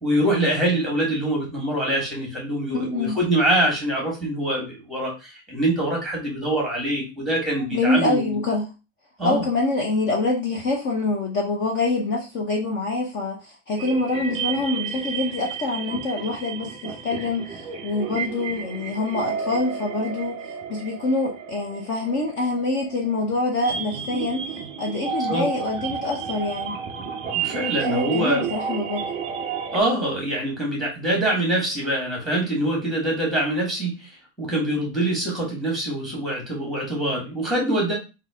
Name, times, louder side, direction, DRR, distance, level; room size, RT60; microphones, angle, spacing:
voice 1, 0.0-8.4 9.2-9.4 25.3-25.5 27.3-28.5 29.7-34.1 34.4-37.9, right 1 dB, ahead, -2 dB, 1.6 m, -24 dB
voice 2, 2.7-3.2 7.7-8.7 9.2-26.7 27.9-29.0, left 2 dB, 30° left, -1 dB, 0.8 m, -25 dB
sound 1, 13.8-29.8, right 6 dB, 15° right, 0.4 m, -32 dB
3.8 x 2.8 x 4.8 m, 0.30 s
supercardioid pair, 165°, 41 cm